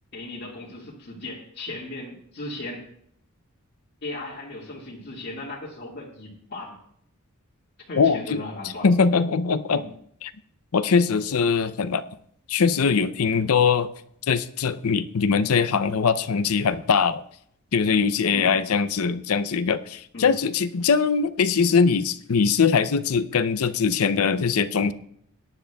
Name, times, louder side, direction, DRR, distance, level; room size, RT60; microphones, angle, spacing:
voice 1, 0.1-2.9 4.0-6.8 7.9-8.9 9.7-9.9 13.3-13.5 18.3-18.6 20.1-20.3, left 2 dB, 50° left, -5 dB, 1.9 m, -37 dB
voice 2, 8.0-8.4 8.8-9.8 10.2-10.3 10.7-12.0 12.5-13.9 14.3-17.2 17.7-24.9, left 5 dB, 75° left, 13 dB, 0.6 m, -21 dB
17.5 x 10.5 x 2.3 m, 0.68 s
head